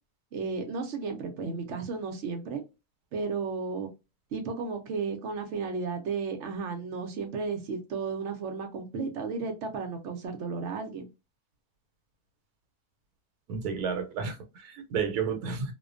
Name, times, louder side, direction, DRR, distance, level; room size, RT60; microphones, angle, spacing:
voice 1, 0.3-2.6 3.1-3.9 4.3-11.1, right 4 dB, 65° right, 0.8 m, -33 dB
voice 2, 13.5-15.7, right 6 dB, 85° right, 1.1 m, -31 dB
2.4 x 2.1 x 2.4 m
omnidirectional pair, 1.6 m